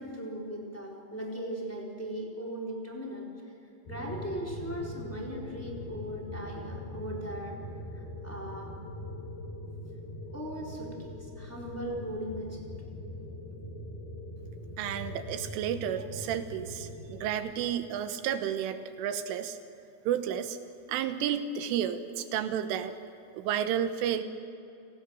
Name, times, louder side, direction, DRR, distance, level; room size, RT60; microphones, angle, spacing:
voice 1, 0.0-3.5 3.9-7.6 7.9-8.8 10.3-12.6, right 1 dB, 5° left, -2 dB, 3.0 m, -38 dB
sound 1, 3.9-17.6, left 1 dB, 50° left, 5.7 m, -42 dB
voice 2, 14.8-19.6 20.1-20.6 20.9-23.0 23.3-24.2, right 9 dB, 75° right, 9 dB, 3.5 m, -31 dB
29.5 x 19.0 x 7.7 m, 2.6 s
omnidirectional pair, 6.0 m